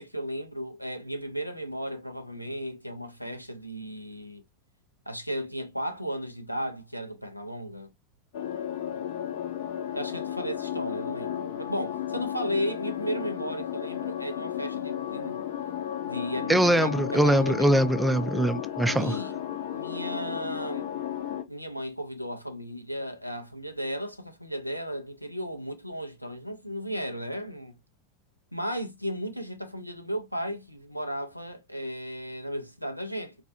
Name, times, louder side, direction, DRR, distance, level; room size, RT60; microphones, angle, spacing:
voice 1, 0.0-4.4 5.1-7.9 9.9-15.5 16.0-17.8 18.9-19.4 19.7-20.9 21.5-27.8 28.5-33.3, equal, 90° left, 0.5 m, -35 dB
sound 1, 8.3-21.4, left 10 dB, 55° left, 0.7 m, -34 dB
voice 2, 16.5-19.1, right 1 dB, 5° right, 0.4 m, -22 dB
4.1 x 2.3 x 2.6 m
figure-of-eight pair, 90°, 0 cm